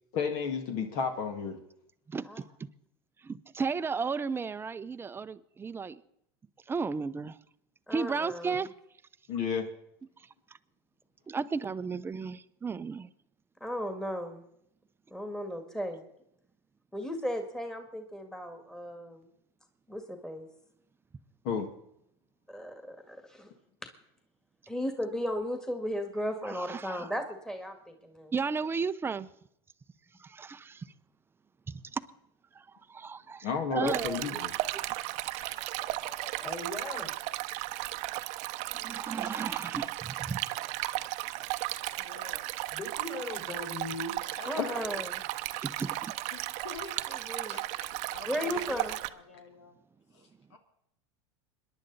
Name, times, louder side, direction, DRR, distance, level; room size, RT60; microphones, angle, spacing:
voice 1, 0.1-1.6 9.3-9.7 21.4-21.7 33.4-34.5 35.5-35.6 44.6-44.7, left 5 dB, 60° left, 2.0 m, -31 dB
voice 2, 2.1-2.7 3.2-6.0 6.7-7.4 7.9-8.7 10.2-10.3 11.3-13.1 26.4-27.1 28.3-29.3 30.2-30.8 31.7-32.0 32.5-34.2 38.8-40.4 45.6-46.1, right 5 dB, 15° right, 0.7 m, -34 dB
voice 3, 7.9-8.6 13.6-14.4 15.1-16.0 16.9-19.3 19.9-20.5 22.5-23.5 24.7-28.3 44.4-45.2 47.3-47.6 48.3-49.0, equal, 5° left, 1.9 m, -35 dB
Stream, 33.9-49.1, right 18 dB, 55° right, 0.8 m, -35 dB
voice 4, 35.6-37.1 42.7-44.2, left 2 dB, 30° left, 4.7 m, -40 dB
voice 5, 42.0-42.4 44.2-45.0 46.3-49.8 50.1-50.6, left 4 dB, 90° left, 2.8 m, -48 dB
26.5 x 11.0 x 4.1 m
supercardioid pair, 110°, 14 cm